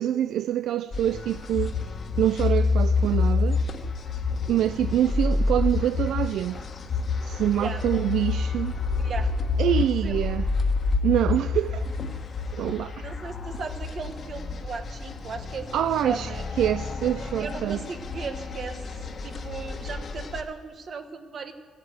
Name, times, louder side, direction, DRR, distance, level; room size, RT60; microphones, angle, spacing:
voice 1, 0.0-1.7 2.2-3.6 4.5-6.6 7.2-8.8 9.6-10.5 11.0-11.9 12.5-13.0 15.7-16.3 16.6-17.8, right 11 dB, 75° right, 0.3 m, -25 dB
sound 1, 0.9-20.4, left 4 dB, 45° left, 1.3 m, -28 dB
voice 2, 7.6-8.1 8.9-9.3 9.7-10.1 13.0-16.4 17.4-18.8 19.2-21.5, right 5 dB, 50° right, 1.2 m, -37 dB
15.0 x 8.3 x 7.9 m
cardioid pair, 90°, 0 cm